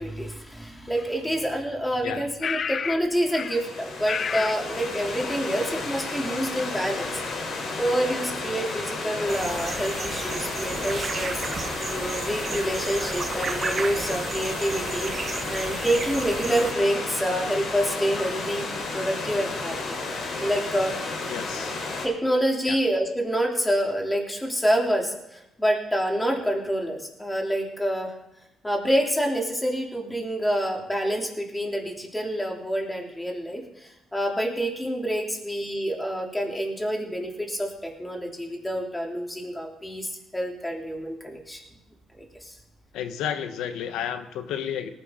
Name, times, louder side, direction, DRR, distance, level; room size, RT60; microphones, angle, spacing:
voice 1, 0.0-7.2 7.8-11.4 11.9-15.1 15.5-18.7 18.9-19.7 20.1-20.9 22.0-28.1 28.6-41.6 42.1-42.5, equal, 10° left, 0 dB, 3.3 m, -27 dB
sound 1, 1.0-1.1 2.4-3.0 3.3-3.6 4.1-4.6, left 6 dB, 50° left, 0.3 m, -29 dB
Stream / Liquid, 3.1-22.1, left 3 dB, 75° left, 3.9 m, -32 dB
sound 2, 9.3-16.7, right 4 dB, 40° right, 1.3 m, -34 dB
voice 2, 21.3-21.8 22.6-22.8 42.9-44.9, left 9 dB, 90° left, 9 dB, 1.1 m, -31 dB
18.5 x 10.5 x 3.9 m, 0.88 s
cardioid pair, 90°, 0 cm